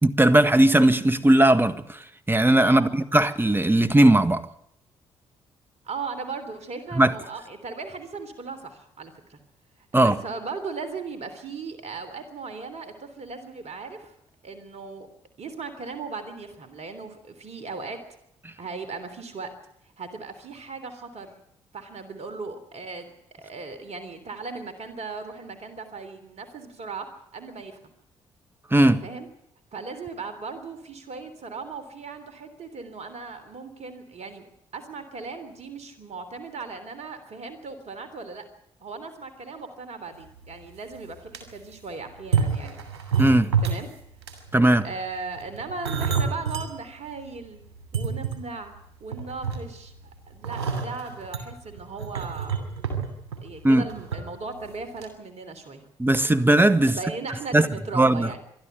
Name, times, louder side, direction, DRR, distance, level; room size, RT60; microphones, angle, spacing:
voice 1, 0.0-4.4 6.9-7.1 9.9-10.2 28.7-29.0 43.2-43.5 44.5-44.9 53.6-53.9 56.0-57.0 57.5-57.7 57.9-58.3, right 1 dB, 15° right, 1.6 m, -18 dB
voice 2, 5.8-9.4 10.0-14.1 14.4-15.1 15.4-18.0 18.6-19.5 20.0-21.3 21.7-23.1 23.4-27.1 27.3-27.8 29.0-29.3 29.7-34.5 34.7-38.4 38.8-42.8 43.6-43.9 44.8-47.6 47.9-48.7 49.0-49.9 50.3-52.7 53.4-55.9 56.8-58.4, right 4 dB, 55° right, 3.3 m, -37 dB
sound 1, 40.4-40.5 41.0-41.4 42.2-43.9 44.2-44.5 45.3-46.7 47.2-47.3 47.8-48.8 49.1-49.9 50.4-54.2 54.5-54.7 55.0-55.1, right 6 dB, 85° right, 2.7 m, -28 dB
26.0 x 12.0 x 9.1 m
hypercardioid pair, 45°, 14 cm